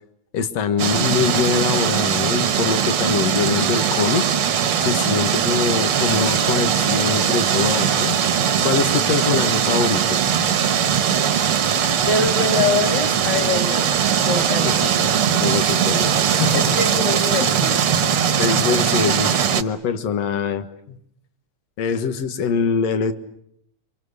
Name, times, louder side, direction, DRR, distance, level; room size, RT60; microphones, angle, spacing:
voice 1, 0.3-4.3 4.8-8.2 8.6-10.2 14.7-14.8 15.4-16.8 17.4-17.6 18.4-21.0 21.8-23.1, left 6 dB, 60° left, 10 dB, 2.6 m, -23 dB
sound 1, 0.8-19.6, right 8 dB, 55° right, 1.9 m, -20 dB
voice 2, 12.1-13.9 14.2-14.8 16.5-17.8, left 4 dB, 35° left, 5 dB, 3.6 m, -24 dB
29.5 x 25.0 x 6.6 m, 0.72 s
omnidirectional pair, 3.4 m